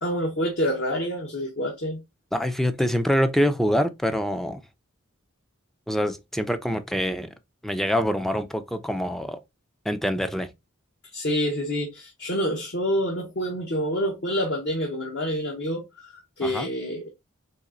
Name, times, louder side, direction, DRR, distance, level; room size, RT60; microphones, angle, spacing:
voice 1, 0.0-2.0 11.1-17.1, equal, 55° left, 1.0 m, -27 dB
voice 2, 2.3-4.6 5.9-7.3 7.6-9.4 9.9-10.5 16.4-16.7, equal, ahead, 0.4 m, -25 dB
4.2 x 3.2 x 3.7 m
head